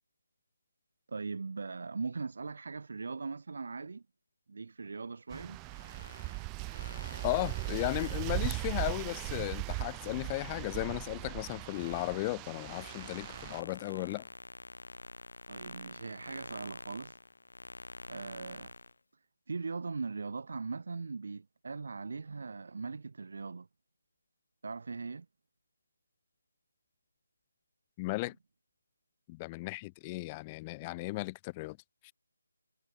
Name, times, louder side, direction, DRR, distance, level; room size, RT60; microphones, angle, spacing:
voice 1, 1.1-4.0 4.5-5.6 15.5-17.2 18.1-18.7 19.5-23.7 24.6-25.3, right 4 dB, 55° right, 2.4 m, -40 dB
sound 1, 5.3-13.6, right 30 dB, 15° right, 2.6 m, -38 dB
sound 2, 5.5-10.6 11.1-18.9, left 2 dB, 70° left, 3.4 m, -49 dB
voice 2, 7.2-14.2 28.0-28.4 29.3-31.8 32.0-32.1, left 23 dB, 20° left, 0.6 m, -35 dB
figure-of-eight pair, 155°, 0 cm